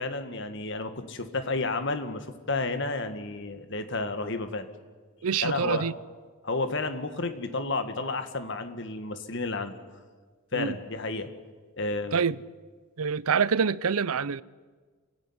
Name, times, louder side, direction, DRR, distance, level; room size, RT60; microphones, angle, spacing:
voice 1, 0.0-4.7 5.4-5.9 6.4-9.8 10.5-11.3 11.8-12.2, left 3 dB, 55° left, 1.9 m, -31 dB
voice 2, 5.2-5.9 10.5-10.7 12.1-12.4 13.0-14.4, right 6 dB, 75° right, 0.6 m, -26 dB
27.5 x 16.5 x 9.8 m
head